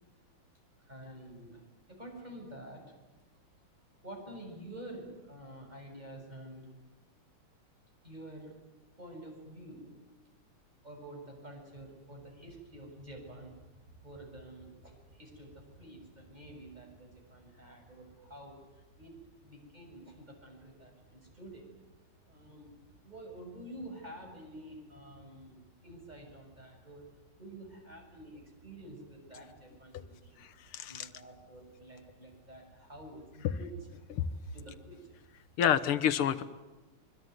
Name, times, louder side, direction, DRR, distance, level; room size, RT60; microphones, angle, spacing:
voice 1, 0.8-1.6 1.9-2.9 4.0-6.7 8.0-8.5 9.0-9.9 10.8-13.6 14.0-21.6 22.3-27.1 27.4-30.4 30.9-33.9 34.5-35.1, right 1 dB, 20° right, 2 dB, 7.3 m, -49 dB
voice 2, 30.4-31.1 34.1-34.2 35.6-36.4, left 9 dB, 85° left, 13 dB, 2.1 m, -29 dB
25.0 x 24.5 x 9.5 m, 1.1 s
omnidirectional pair, 2.4 m